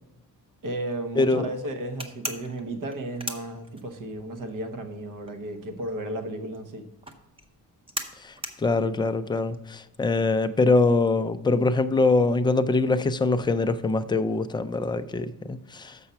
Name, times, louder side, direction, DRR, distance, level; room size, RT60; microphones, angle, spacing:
voice 1, 0.6-6.9, right 1 dB, 55° right, 1.1 m, -34 dB
voice 2, 1.2-1.5 8.2-16.0, left 3 dB, 15° left, 0.3 m, -23 dB
sound 1, 2.0-4.2 4.5-10.3, right 1 dB, 15° right, 0.7 m, -37 dB
6.8 x 5.6 x 5.7 m
cardioid pair, 115°, 36 cm